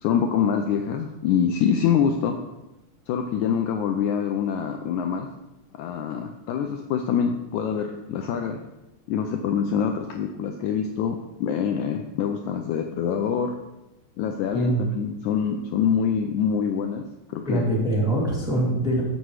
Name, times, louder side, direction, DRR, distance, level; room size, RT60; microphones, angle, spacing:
voice 1, 0.0-2.4 3.1-5.3 5.8-8.6 9.1-13.6 14.2-17.7, left 7 dB, 75° left, 4 dB, 1.9 m, -25 dB
voice 2, 17.5-19.0, right 1 dB, ahead, -5 dB, 2.0 m, -23 dB
14.0 x 5.5 x 4.8 m, 0.99 s
omnidirectional pair, 3.9 m